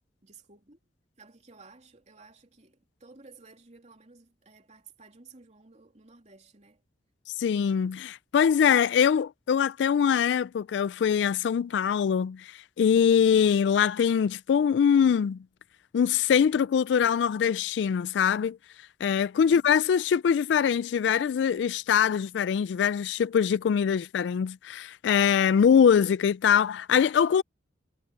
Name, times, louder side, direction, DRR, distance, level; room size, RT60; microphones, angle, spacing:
voice 1, 0.2-0.8 1.2-6.8 19.4-19.7, right 3 dB, 40° right, 3.0 m, -54 dB
voice 2, 7.4-15.4 15.9-18.6 19.0-27.4, left 7 dB, 70° left, 0.3 m, -23 dB
head